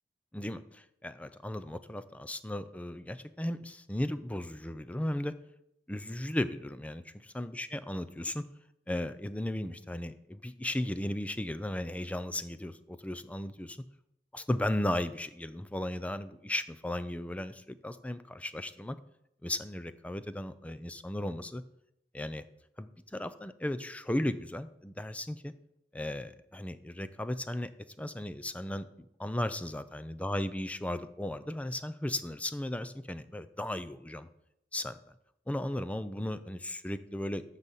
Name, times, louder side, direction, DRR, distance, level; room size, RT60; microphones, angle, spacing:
voice 1, 0.3-5.3 5.9-8.5 8.9-13.8 14.3-19.0 19.4-21.6 22.1-22.5 22.8-25.5 25.9-27.7 28.0-34.3 34.7-35.0 35.5-37.4, left 1 dB, 10° left, 12 dB, 0.5 m, -36 dB
12.0 x 4.1 x 7.4 m, 0.79 s
head